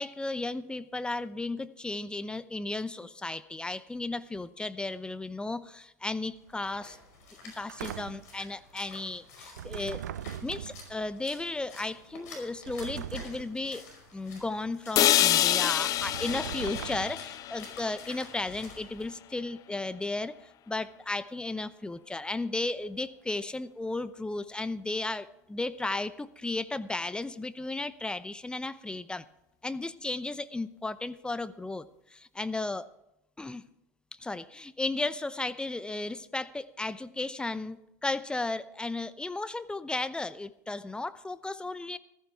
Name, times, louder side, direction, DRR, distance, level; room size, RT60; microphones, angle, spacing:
voice 1, 0.0-7.0 7.4-10.0 10.4-13.8 14.1-29.2 29.6-32.9 33.4-33.7 34.2-42.0, left 2 dB, 10° left, 14 dB, 0.7 m, -34 dB
Splash splatter, 6.3-19.1, left 3 dB, 75° left, 5.2 m, -51 dB
sound 1, 7.7-8.4 9.6-11.0 12.7-13.6 16.0-17.4, right 10 dB, 80° right, 0.4 m, -40 dB
sound 2, 15.0-19.0, left 14 dB, 40° left, 0.3 m, -27 dB
15.5 x 14.0 x 3.5 m, 0.86 s
hypercardioid pair, 80°, 9 cm